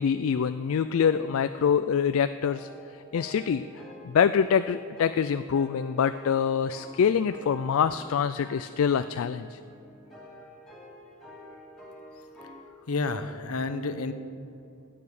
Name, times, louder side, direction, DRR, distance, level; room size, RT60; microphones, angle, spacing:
voice 1, 0.0-2.7 3.1-3.6 4.0-9.6, left 7 dB, 70° left, 11 dB, 0.3 m, -25 dB
sound 1, 0.7-1.9 2.4-12.6, left 1 dB, ahead, 3.2 m, -48 dB
voice 2, 12.9-14.1, left 3 dB, 85° left, 10 dB, 0.9 m, -30 dB
20.0 x 9.1 x 4.9 m, 2.7 s
head